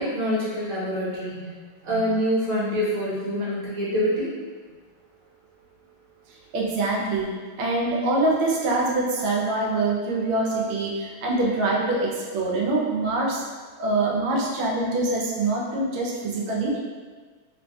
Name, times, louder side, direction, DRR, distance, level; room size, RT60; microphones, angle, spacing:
voice 1, 0.0-1.5 1.8-4.3, equal, 60° right, -8 dB, 1.6 m, -25 dB
voice 2, 6.5-7.3 7.6-13.4 13.8-16.8, right 2 dB, 90° right, -3 dB, 1.5 m, -24 dB
3.7 x 2.2 x 2.6 m, 1.5 s
omnidirectional pair, 2.3 m